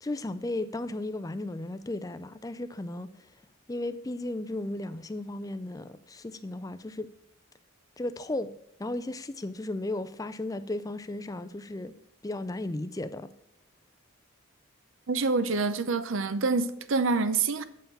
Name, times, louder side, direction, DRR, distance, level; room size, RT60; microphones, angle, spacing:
voice 1, 0.0-3.1 3.7-7.1 8.0-8.5 8.8-11.9 12.2-13.3, left 2 dB, 15° left, 0.4 m, -35 dB
voice 2, 15.1-17.6, right 4 dB, 65° right, 0.6 m, -26 dB
8.7 x 5.6 x 5.4 m
head